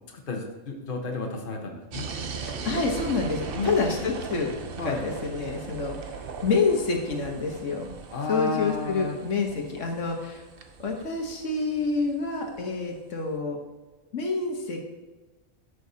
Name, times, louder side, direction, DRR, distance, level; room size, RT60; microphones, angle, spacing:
voice 1, 0.1-2.1 3.5-4.0 4.8-5.0 8.1-9.2, left 4 dB, 45° left, 1 dB, 1.2 m, -32 dB
sound 1, 1.9-12.6, right 5 dB, 55° right, 0.8 m, -38 dB
voice 2, 2.3-4.5 4.8-6.0 6.4-7.9 8.3-10.4 10.8-13.6 14.1-14.8, left 4 dB, 75° left, 1 dB, 1.5 m, -27 dB
12.5 x 6.2 x 2.8 m, 1.2 s
omnidirectional pair, 1.3 m